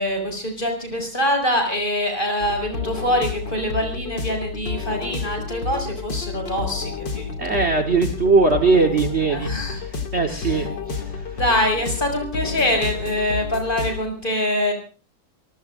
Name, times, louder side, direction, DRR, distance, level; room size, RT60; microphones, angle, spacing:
voice 1, 0.0-7.6 9.2-9.8 10.3-10.7 11.3-14.7, left 1 dB, 25° left, 4 dB, 6.3 m, -24 dB
sound 1, 2.4-14.0, left 5 dB, 85° left, 3.1 m, -30 dB
voice 2, 7.4-9.5 10.1-11.0, right 4 dB, 40° right, 7 dB, 1.6 m, -19 dB
28.0 x 19.0 x 2.6 m, 0.34 s
omnidirectional pair, 1.9 m